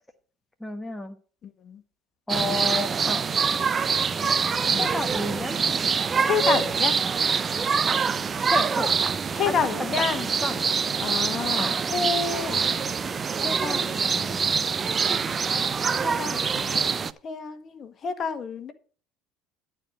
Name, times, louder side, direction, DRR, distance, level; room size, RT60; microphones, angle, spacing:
voice 1, 0.6-1.2 2.3-3.3 4.8-5.6 8.5-8.9 9.5-9.6 10.4-10.6 11.6-11.7, left 2 dB, 5° left, 6 dB, 1.2 m, -31 dB
voice 2, 1.4-1.8 4.7-4.9 6.2-7.0 9.3-10.3 11.0-13.1 13.4-14.5 16.0-16.9 17.2-18.7, left 6 dB, 40° left, 9 dB, 1.6 m, -30 dB
sound 1, 2.3-17.1, right 5 dB, 30° right, 0.6 m, -25 dB
11.5 x 4.6 x 8.0 m, 0.40 s
supercardioid pair, 85°, 0 cm